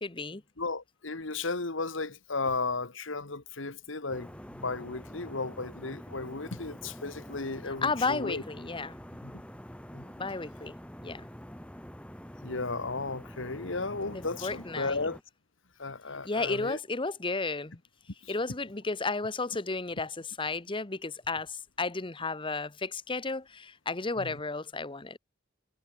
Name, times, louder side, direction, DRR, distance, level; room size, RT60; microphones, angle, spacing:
voice 1, 0.0-0.4 7.7-9.0 10.2-10.7 11.0-11.3 14.1-15.1 16.2-17.8 18.3-25.2, left 3 dB, 25° left, 1.1 m, -33 dB
voice 2, 0.6-8.4 9.2-9.4 9.9-10.0 12.4-15.2 15.8-16.8 18.2-18.3 24.2-24.3, left 3 dB, 70° left, 1.8 m, -35 dB
sound 1, 4.1-15.2, equal, 5° left, 5.8 m, -46 dB
head